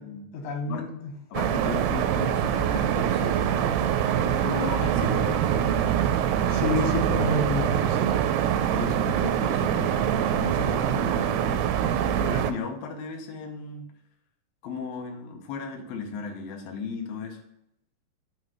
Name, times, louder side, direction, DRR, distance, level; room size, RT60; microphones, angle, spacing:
voice 1, 0.3-1.1 6.5-8.1, left 3 dB, 90° left, 2 dB, 3.7 m, -29 dB
voice 2, 1.3-3.9 4.4-5.8 8.7-13.9 14.6-17.4, left 4 dB, 75° left, 3 dB, 2.5 m, -36 dB
sound 1, 1.3-12.5, right 9 dB, 90° right, 2.7 m, -24 dB
7.6 x 3.1 x 6.1 m, 0.81 s
omnidirectional pair, 4.7 m